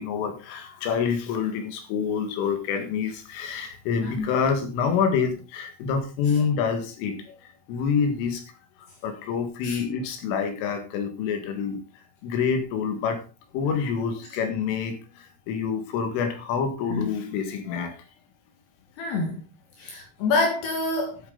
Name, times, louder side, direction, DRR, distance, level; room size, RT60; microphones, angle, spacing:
voice 1, 0.0-8.4 9.0-11.8 12.2-13.2 13.5-18.0, left 6 dB, 80° left, 6 dB, 4.4 m, -27 dB
voice 2, 19.0-19.4 19.8-21.3, left 3 dB, 65° left, 2 dB, 3.5 m, -27 dB
12.0 x 8.8 x 3.9 m, 0.31 s
omnidirectional pair, 5.7 m